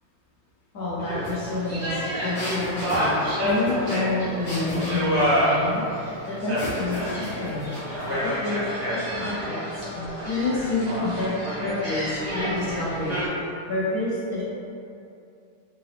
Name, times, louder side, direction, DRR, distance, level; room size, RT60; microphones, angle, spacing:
voice 1, 0.7-7.7 8.1-8.6 9.1-9.6 9.9-14.4, left 2 dB, 65° left, -8 dB, 1.0 m, -29 dB
sound 1, 1.0-13.3, equal, 35° right, 0.6 m, -28 dB
sound 2, 1.2-1.3 1.6-5.4 6.6-8.1, equal, 45° left, 1.4 m, -36 dB
Telephone, 7.1-12.9, equal, 85° left, 0.7 m, -44 dB
3.8 x 2.5 x 3.1 m, 2.7 s
omnidirectional pair, 2.1 m